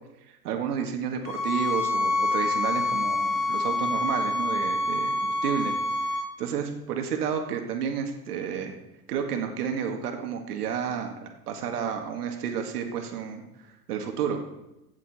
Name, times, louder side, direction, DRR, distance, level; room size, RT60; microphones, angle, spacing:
voice 1, 0.3-5.7 6.4-8.7 9.1-13.4 13.9-14.4, right 7 dB, 70° right, 4 dB, 2.0 m, -31 dB
sound 1, 1.3-6.3, left 2 dB, 25° left, 0.4 m, -26 dB
16.0 x 7.2 x 4.3 m, 0.91 s
supercardioid pair, 180°, 48 cm